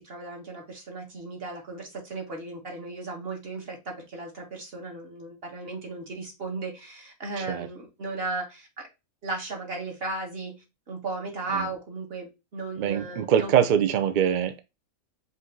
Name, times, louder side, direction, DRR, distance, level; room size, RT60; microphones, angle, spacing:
voice 1, 0.0-8.9 9.2-13.5, right 3 dB, 45° right, 1.6 m, -36 dB
voice 2, 7.4-7.7 11.5-11.7 12.8-14.6, right 9 dB, 80° right, 0.4 m, -23 dB
5.1 x 2.7 x 3.7 m
omnidirectional pair, 1.5 m